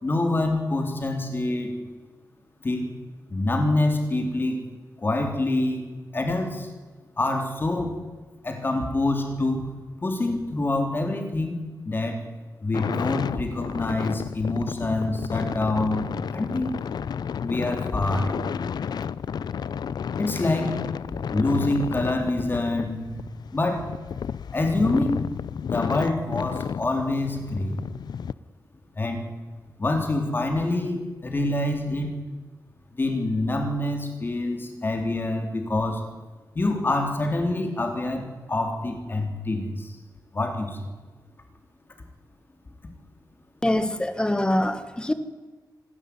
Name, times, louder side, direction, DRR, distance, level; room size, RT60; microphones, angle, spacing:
voice 1, 0.0-1.7 2.6-2.9 3.3-4.6 5.0-5.8 6.1-6.7 7.2-7.9 8.4-9.7 10.0-11.6 11.8-12.2 12.6-16.0 16.3-16.7 17.4-18.7 20.2-20.8 21.3-23.2 23.5-23.9 24.5-25.2 25.7-27.7 29.0-29.2 29.8-32.1 33.0-36.0 36.5-39.9 40.3-40.8, left 2 dB, 30° left, 4 dB, 3.8 m, -26 dB
sound 1, 12.7-28.3, left 7 dB, 80° left, 0.6 m, -32 dB
voice 2, 43.6-45.1, left 1 dB, 10° left, 11 dB, 1.5 m, -24 dB
26.5 x 12.5 x 9.8 m, 1.3 s
wide cardioid pair, 160°, 7 cm